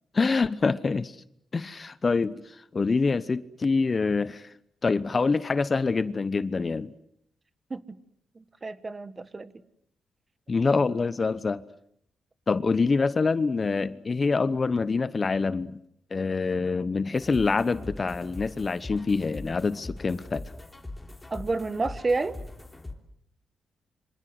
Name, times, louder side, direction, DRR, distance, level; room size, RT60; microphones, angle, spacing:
voice 1, 0.1-1.1 1.5-2.4 2.7-4.5 4.8-6.9 10.5-11.6 12.5-15.8 16.1-20.5, left 4 dB, 35° left, 1.1 m, -25 dB
voice 2, 8.3-9.5 21.3-22.4, right 3 dB, 30° right, 1.6 m, -29 dB
sound 1, 17.1-22.9, left 2 dB, 15° left, 3.5 m, -41 dB
27.0 x 25.5 x 8.0 m
cardioid pair, 95°, 0 cm